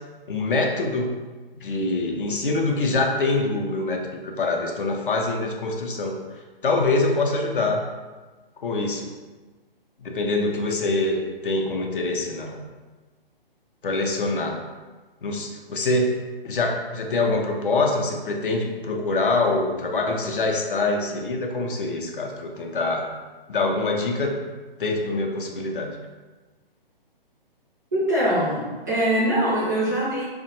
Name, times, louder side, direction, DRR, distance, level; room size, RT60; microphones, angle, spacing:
voice 1, 0.3-1.2 1.6-7.8 8.6-9.1 10.0-12.7 13.8-14.6 15.2-16.1 16.4-23.1 23.5-24.4 24.8-25.9, left 2 dB, 60° left, 2 dB, 0.5 m, -25 dB
voice 2, 27.9-30.2, right 1 dB, 20° right, -8 dB, 0.4 m, -23 dB
2.6 x 2.1 x 2.7 m, 1.3 s
figure-of-eight pair, 130°, 30 cm